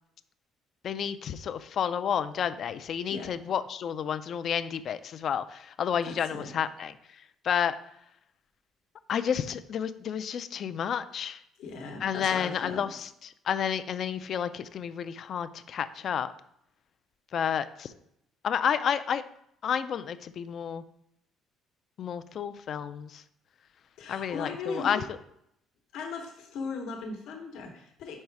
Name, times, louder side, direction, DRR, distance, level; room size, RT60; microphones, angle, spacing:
voice 1, 0.8-6.9 7.4-7.8 9.1-11.4 12.0-16.3 17.3-17.9 18.4-19.2 19.6-20.8 22.0-23.2 24.1-25.0, left 8 dB, 45° left, 12 dB, 0.3 m, -30 dB
voice 2, 6.1-6.5 11.6-12.9 24.0-25.0 25.9-28.2, left 4 dB, 75° left, 3 dB, 1.0 m, -38 dB
5.4 x 4.8 x 4.6 m, 0.76 s
cardioid pair, 135°, 0 cm